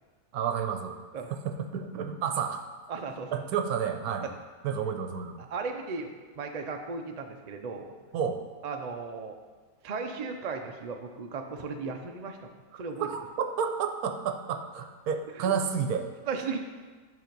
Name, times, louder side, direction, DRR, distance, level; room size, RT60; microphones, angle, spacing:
voice 1, 0.3-1.0 1.3-2.6 3.3-4.3 4.6-5.4 8.1-8.4 12.7-16.1, right 7 dB, 85° right, 6 dB, 1.2 m, -31 dB
voice 2, 2.9-3.4 4.2-4.3 5.4-6.1 6.4-7.9 8.6-9.4 9.8-12.5 12.8-13.1 15.4-15.5 16.3-16.6, right 4 dB, 50° right, 4 dB, 0.4 m, -36 dB
10.5 x 3.6 x 5.1 m, 1.4 s
omnidirectional pair, 1.6 m